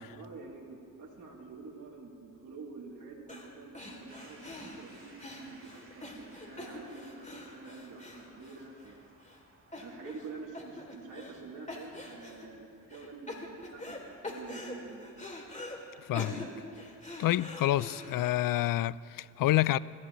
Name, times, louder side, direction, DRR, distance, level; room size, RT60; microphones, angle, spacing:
voice 1, 0.0-9.0 9.8-15.1, right 4 dB, 55° right, 2.9 m, -47 dB
sound 1, 3.3-3.5 3.7-8.9 9.2-9.4 9.7-10.3 10.5-11.4 11.7-12.5 12.9-14.0 14.2-15.8 16.1-18.3, left 1 dB, 20° left, 2.7 m, -44 dB
sound 2, 4.1-13.9, right 2 dB, 35° right, 2.9 m, -61 dB
voice 2, 16.1-16.5 17.2-19.8, left 15 dB, 65° left, 0.5 m, -28 dB
29.5 x 15.0 x 3.0 m
cardioid pair, 70°, 36 cm